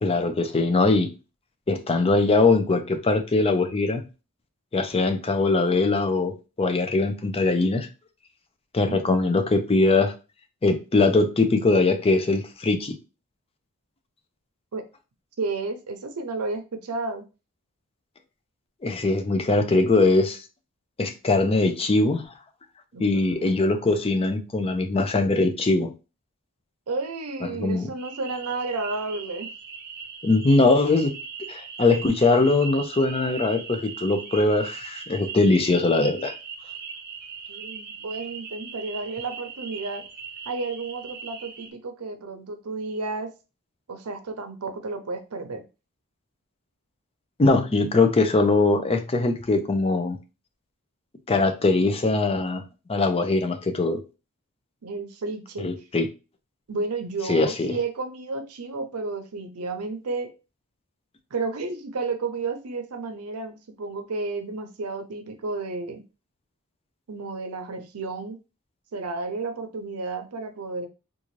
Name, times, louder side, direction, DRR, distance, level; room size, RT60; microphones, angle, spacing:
voice 1, 0.0-1.1 1.7-4.0 4.7-7.9 8.7-10.1 10.6-12.9 18.8-20.4 21.0-22.2 23.0-25.9 27.6-27.9 30.2-31.1 31.5-36.3 47.4-50.2 51.3-52.6 52.9-54.0 55.6-56.1 57.3-57.8, left 3 dB, 25° left, 0.5 m, -21 dB
voice 2, 15.4-17.3 22.9-23.5 26.9-29.5 37.5-40.0 40.5-43.3 43.9-45.6 54.8-55.7 56.7-60.3 61.3-66.0 67.1-68.4 68.9-70.9, right 3 dB, 85° right, 0.7 m, -32 dB
sound 1, 28.0-41.7, right 6 dB, 45° right, 0.7 m, -39 dB
3.8 x 2.5 x 3.1 m
head